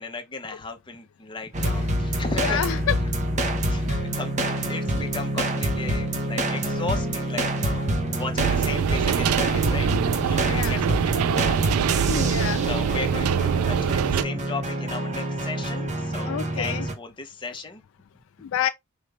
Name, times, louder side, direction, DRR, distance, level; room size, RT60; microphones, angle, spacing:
voice 1, 0.0-2.6 3.6-7.8 8.1-9.9 10.2-11.6 12.7-17.8 18.4-18.5, left 3 dB, 25° left, 0.8 m, -36 dB
sound 1, 1.5-16.9, right 1 dB, 35° right, 0.7 m, -27 dB
voice 2, 2.4-3.0 3.9-4.0 10.5-10.7 12.1-12.6 16.3-16.8 18.5-18.7, left 10 dB, 65° left, 0.3 m, -27 dB
sound 2, 8.4-14.2, right 8 dB, 85° right, 0.4 m, -24 dB
4.8 x 2.5 x 3.3 m
head